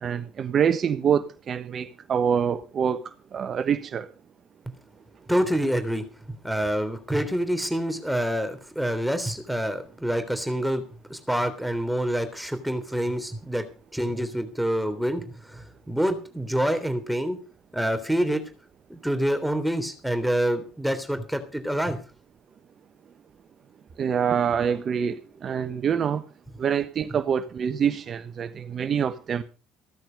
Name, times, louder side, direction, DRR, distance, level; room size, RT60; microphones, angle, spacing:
voice 1, 0.0-3.0 3.3-4.1 24.0-26.2 26.6-29.4, right 7 dB, 45° right, 1.2 m, -25 dB
voice 2, 5.3-6.1 6.4-10.8 11.1-13.7 13.9-17.4 17.7-18.4 18.9-22.0, equal, ahead, 3.4 m, -26 dB
16.0 x 13.5 x 5.4 m
hypercardioid pair, 60°, 0 cm